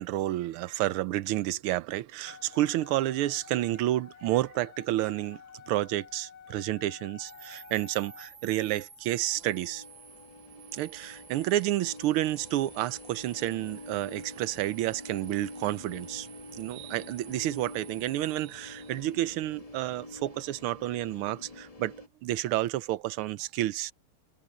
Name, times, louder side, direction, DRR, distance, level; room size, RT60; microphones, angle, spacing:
voice 1, 0.0-5.4 5.7-9.8 10.7-16.3 16.6-21.9 22.2-23.9, right 14 dB, 80° right, 1.6 m, -30 dB
Wind instrument woodwind instrument, 2.3-8.3, left 7 dB, 65° left, 3.1 m, -51 dB
sound 1, 7.2-19.4, right 6 dB, 60° right, 2.8 m, -52 dB
sound 2, 9.3-22.1, left 2 dB, 15° left, 2.4 m, -47 dB
omnidirectional pair, 2.4 m